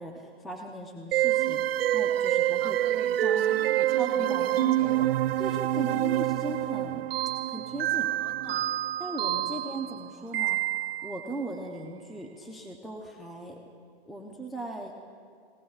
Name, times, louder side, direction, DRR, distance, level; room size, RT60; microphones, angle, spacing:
voice 1, 0.0-1.6 1.9-2.8 3.2-3.4 4.0-5.1 5.4-7.0 7.5-8.1 9.0-10.6 11.0-13.6 14.1-14.9, right 2 dB, ahead, 2 dB, 0.4 m, -38 dB
sound 1, 1.1-11.3, right 13 dB, 70° right, 0.4 m, -27 dB
voice 2, 2.6-5.1 5.8-6.0 8.1-8.8 9.4-9.6 10.3-10.6, right 8 dB, 35° right, 5 dB, 1.6 m, -46 dB
27.5 x 17.0 x 2.4 m, 2.2 s
hypercardioid pair, 140°, 30 cm